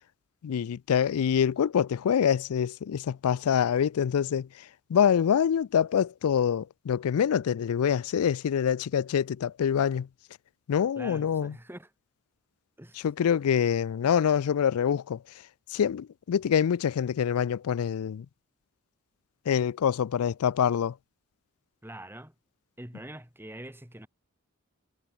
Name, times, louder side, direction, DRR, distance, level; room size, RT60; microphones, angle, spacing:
voice 1, 0.4-10.1 10.7-11.5 13.0-15.2 15.7-18.3 19.5-20.9, left 8 dB, 85° left, 0.4 m, -25 dB
voice 2, 11.0-11.9 12.8-13.1 21.8-22.3 22.8-24.1, right 1 dB, 10° right, 4.1 m, -44 dB
head